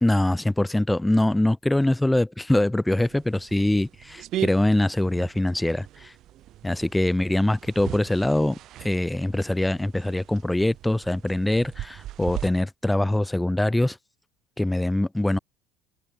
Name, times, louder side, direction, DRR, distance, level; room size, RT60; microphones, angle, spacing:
voice 1, 0.0-6.1 6.6-14.0 14.6-15.4, left 1 dB, 10° left, 1.7 m, -23 dB
sound 1, 2.9-12.5, right 13 dB, 55° right, 4.4 m, -39 dB
hypercardioid pair, 60°, 0 cm